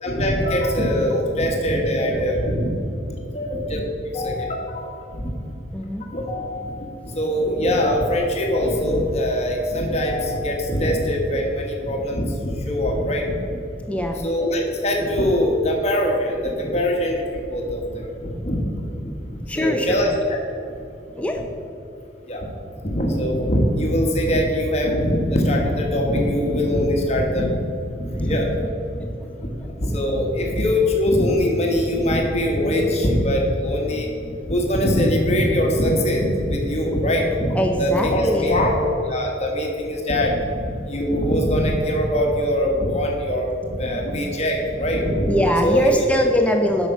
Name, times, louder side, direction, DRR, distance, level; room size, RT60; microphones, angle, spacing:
voice 1, 0.0-2.7 3.1-3.8 4.1-5.3 6.0-13.6 14.2-18.6 19.0-20.4 22.3-22.5 22.8-27.5 28.0-28.6 29.4-29.5 29.8-40.6 40.9-45.3 45.6-45.9, left 1 dB, 35° left, 0 dB, 1.3 m, -22 dB
voice 2, 5.7-6.0 13.9-14.3 19.5-20.1 21.1-21.4 28.9-29.5 30.4-30.5 33.9-34.3 37.5-38.6 43.8-44.0 45.2-46.9, equal, 5° left, 3 dB, 0.5 m, -23 dB
8.3 x 5.8 x 5.9 m, 2.6 s
head